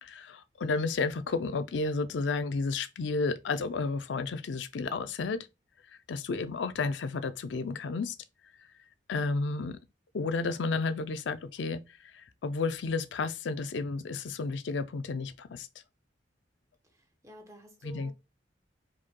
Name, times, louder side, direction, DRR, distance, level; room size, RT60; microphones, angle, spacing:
voice 1, 0.0-5.5 6.1-8.2 8.6-8.7 9.1-9.8 10.1-15.7 17.8-18.1, left 4 dB, 85° left, 0.5 m, -32 dB
voice 2, 16.9-18.1, right 2 dB, 20° right, 0.9 m, -51 dB
4.9 x 4.2 x 2.2 m
head